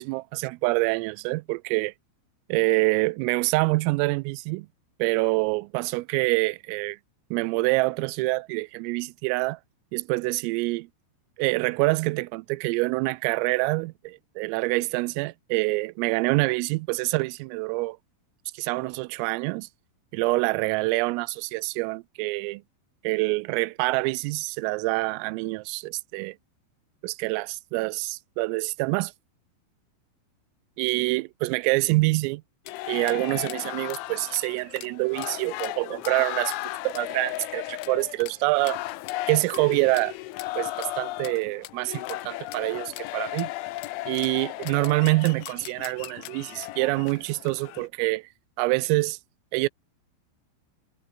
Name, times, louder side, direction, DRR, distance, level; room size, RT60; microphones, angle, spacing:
voice 1, 0.0-1.9 2.5-4.7 5.0-7.0 7.3-9.6 9.9-10.9 11.4-18.0 18.5-19.7 20.1-22.6 23.0-26.4 27.0-29.1 30.8-32.4 32.9-36.6 36.8-38.8 39.3-40.2 40.6-43.5 44.1-48.3 48.6-49.2 49.5-49.7, right 24 dB, 85° right, 3.2 m, -26 dB
sound 1, 32.7-47.9, left 17 dB, 75° left, 3.2 m, -35 dB
omnidirectional pair, 6.0 m